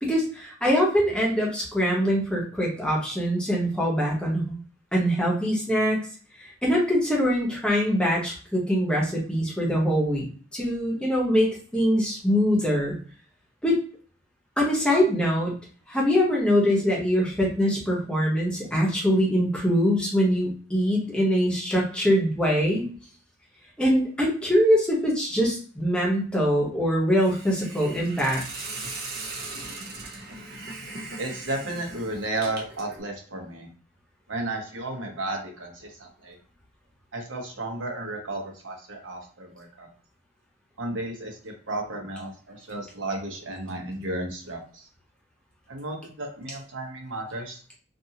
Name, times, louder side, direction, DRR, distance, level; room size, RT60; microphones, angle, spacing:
voice 1, 0.0-4.6 4.9-6.0 6.4-10.2 10.5-13.0 13.6-13.8 14.6-15.5 15.9-22.9 23.8-28.4, equal, 5° left, -3 dB, 0.9 m, -23 dB
Hiss, 27.2-33.0, right 3 dB, 55° right, 0.7 m, -39 dB
voice 2, 31.2-33.7 34.3-36.4 37.1-39.9 40.8-44.9 45.7-47.8, right 2 dB, 85° right, 2 dB, 0.9 m, -33 dB
2.5 x 2.5 x 2.8 m, 0.42 s
head